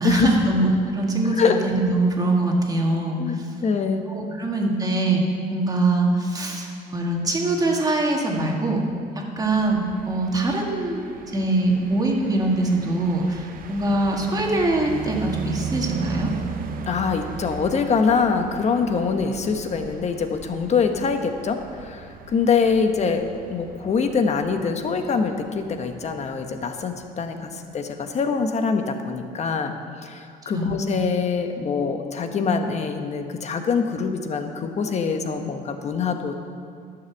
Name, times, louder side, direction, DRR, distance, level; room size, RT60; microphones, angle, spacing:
voice 1, 0.0-0.7 0.9-3.4 4.1-5.2 5.5-8.8 9.2-16.3 27.4-27.5 30.5-30.8, right 2 dB, 20° right, 0 dB, 1.9 m, -23 dB
voice 2, 3.2-4.0 16.8-23.2 23.5-29.7 30.0-36.4, left 5 dB, 40° left, 6 dB, 1.1 m, -24 dB
sound 1, 9.4-27.3, right 5 dB, 55° right, 1.0 m, -38 dB
12.0 x 6.9 x 7.3 m, 2.3 s
cardioid pair, 110°, 17 cm